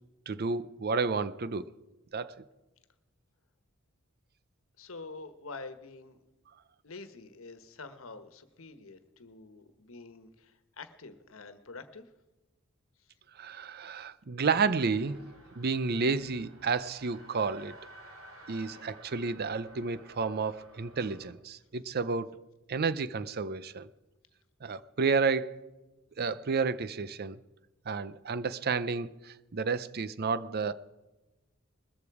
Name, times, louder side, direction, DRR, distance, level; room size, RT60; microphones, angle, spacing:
voice 1, 0.3-1.7 2.1-2.4 13.4-15.3 15.6-17.8 18.5-22.4 22.7-23.9 24.6-25.7 26.2-27.4 27.9-30.7, right 4 dB, 50° right, 0.6 m, -31 dB
voice 2, 4.8-6.2 6.8-12.1, left 3 dB, 75° left, 1.3 m, -47 dB
sound 1, 14.6-21.3, right 1 dB, 75° right, 3.4 m, -53 dB
20.5 x 14.0 x 4.9 m
head